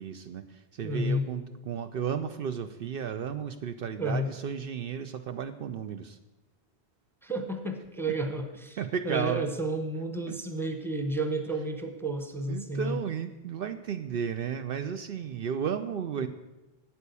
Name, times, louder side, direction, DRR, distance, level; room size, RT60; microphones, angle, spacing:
voice 1, 0.0-6.2 8.8-9.5 10.3-10.4 12.5-16.3, right 7 dB, 65° right, 9 dB, 0.7 m, -33 dB
voice 2, 0.8-1.3 4.0-4.3 7.2-8.8 9.0-13.0 16.2-16.3, right 1 dB, ahead, 6 dB, 0.8 m, -31 dB
8.9 x 8.4 x 6.8 m, 1.0 s
omnidirectional pair, 1.1 m